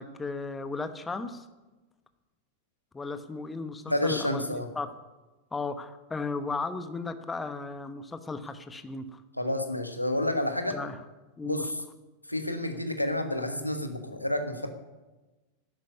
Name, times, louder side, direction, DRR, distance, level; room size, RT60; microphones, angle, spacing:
voice 1, 0.0-1.5 2.9-4.9 5.5-9.2 10.7-11.0 11.4-11.7, left 3 dB, 15° left, 10 dB, 1.1 m, -35 dB
voice 2, 3.9-4.7 9.4-10.8 11.4-11.8 12.3-14.7, left 1 dB, 90° left, 6 dB, 1.5 m, -29 dB
11.5 x 8.9 x 9.8 m, 1.1 s
figure-of-eight pair, 90°, 0 cm